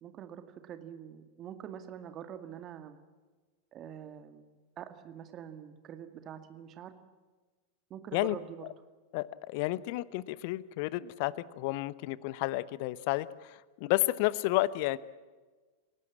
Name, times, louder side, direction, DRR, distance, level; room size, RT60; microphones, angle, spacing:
voice 1, 0.0-3.0 3.7-6.9 7.9-8.6, right 9 dB, 30° right, 9 dB, 2.1 m, -45 dB
voice 2, 9.1-15.0, left 18 dB, 45° left, 19 dB, 0.9 m, -31 dB
29.0 x 17.5 x 7.4 m, 1.3 s
figure-of-eight pair, 90°, 0 cm